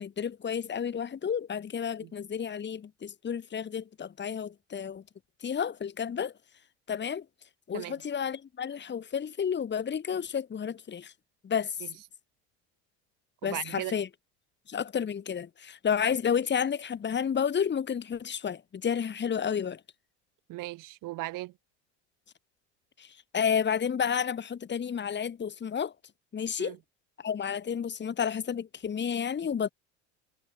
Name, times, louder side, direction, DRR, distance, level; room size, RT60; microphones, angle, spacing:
voice 1, 0.0-5.0 5.4-6.3 6.9-7.2 7.7-11.1 11.4-11.8 13.4-14.1 14.7-19.8 23.0-23.1 23.3-25.9 26.3-26.8 27.2-29.7, left 7 dB, 30° left, 2.7 m, -31 dB
voice 2, 13.4-13.9 20.5-21.5 26.6-26.8, right 18 dB, 60° right, 7.2 m, -37 dB
hypercardioid pair, 90°, 36 cm